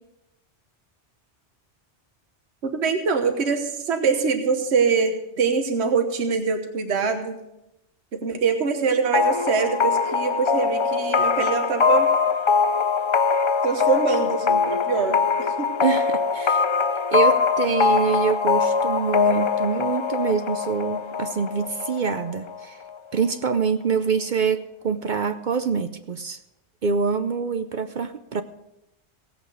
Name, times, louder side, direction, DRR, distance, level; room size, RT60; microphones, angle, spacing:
voice 1, 2.6-7.4 8.2-12.1 13.6-15.7, right 5 dB, 70° right, 5 dB, 1.4 m, -24 dB
sound 1, 9.1-22.6, left 5 dB, 50° left, 0.3 m, -22 dB
voice 2, 15.8-16.6 17.1-22.8 23.1-26.4 26.8-28.4, right 6 dB, 50° right, 9 dB, 0.7 m, -25 dB
17.5 x 8.3 x 4.9 m, 0.88 s
omnidirectional pair, 1.2 m